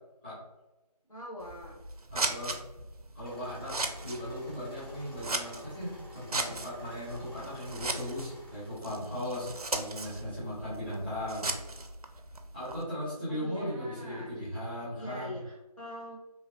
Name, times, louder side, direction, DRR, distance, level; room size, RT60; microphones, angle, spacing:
voice 1, 1.1-1.7 13.3-14.3 14.9-16.2, equal, 55° left, -5 dB, 1.0 m, -43 dB
Scissors, 1.4-12.8, right 2 dB, 65° right, 0.4 m, -38 dB
voice 2, 2.1-2.5 3.1-11.5 12.5-15.4, left 1 dB, 15° left, -13 dB, 1.1 m, -37 dB
sound 1, 3.2-8.8, equal, 35° left, 1.2 m, -50 dB
3.0 x 2.6 x 2.5 m, 1.0 s
figure-of-eight pair, 175°, 21 cm